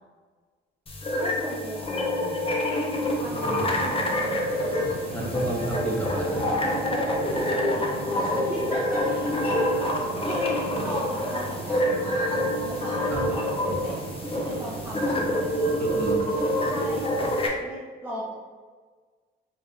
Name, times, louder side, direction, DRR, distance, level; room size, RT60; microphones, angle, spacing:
sound 1, 0.9-17.5, left 1 dB, 30° left, 0.8 m, -27 dB
voice 1, 1.1-2.6 3.2-4.0 6.4-6.7 7.5-9.9 10.2-10.5 10.8-14.0 14.4-15.2 16.6-17.1 17.4-18.3, right 1 dB, 10° right, -8 dB, 0.9 m, -37 dB
sound 2, 3.2-17.4, right 5 dB, 50° right, 0.5 m, -38 dB
voice 2, 3.4-3.9 5.1-6.5 13.1-13.2 13.7-13.8 15.8-16.2, right 1 dB, 10° left, -5 dB, 1.4 m, -31 dB
4.8 x 2.7 x 3.4 m, 1.5 s
cardioid pair, 90°, 20 cm